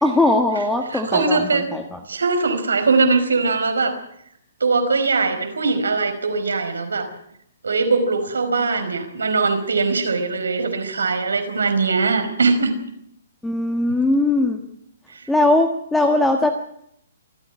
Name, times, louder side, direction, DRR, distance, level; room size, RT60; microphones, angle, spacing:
voice 1, 0.0-2.0 13.4-14.6 15.3-16.5, left 2 dB, 5° left, 4 dB, 1.6 m, -19 dB
voice 2, 0.9-1.7 2.1-4.0 4.6-7.1 7.6-12.7, right 4 dB, 90° right, 7 dB, 4.8 m, -21 dB
27.0 x 9.9 x 9.8 m, 0.74 s
hypercardioid pair, 140°, 0 cm